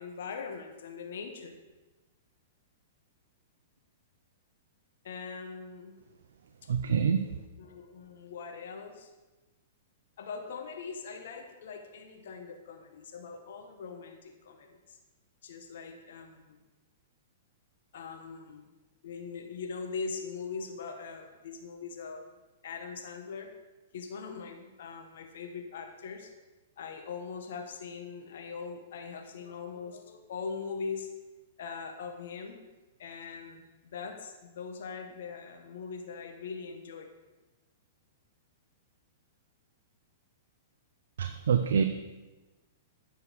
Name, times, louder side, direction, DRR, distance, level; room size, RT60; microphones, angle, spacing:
voice 1, 0.0-1.6 5.0-6.0 7.6-9.1 10.2-15.0 15.4-16.6 17.9-18.7 19.0-22.3 22.6-23.5 23.9-26.3 26.8-31.1 31.6-32.6 33.0-37.1, left 5 dB, 70° left, 5 dB, 1.1 m, -41 dB
voice 2, 6.7-7.3 41.2-41.8, right 7 dB, 75° right, 7 dB, 0.6 m, -26 dB
9.3 x 6.2 x 6.3 m, 1.2 s
hypercardioid pair, 125°, 0 cm